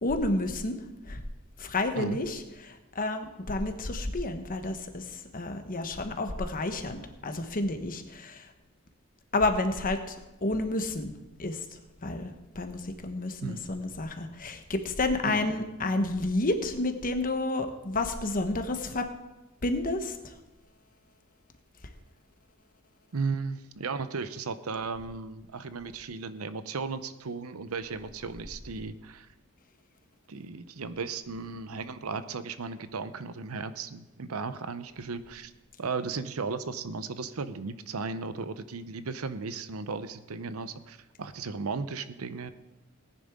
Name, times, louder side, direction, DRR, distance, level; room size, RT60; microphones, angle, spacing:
voice 1, 0.0-0.8 1.0-1.2 1.6-2.4 2.7-8.5 9.3-10.1 10.4-11.1 11.4-11.6 12.0-19.1 19.6-20.3, left 2 dB, 40° left, 7 dB, 1.2 m, -30 dB
voice 2, 23.1-29.3 30.3-35.5 35.8-42.5, right 4 dB, 85° right, 12 dB, 0.7 m, -35 dB
18.5 x 10.0 x 3.7 m, 1.0 s
head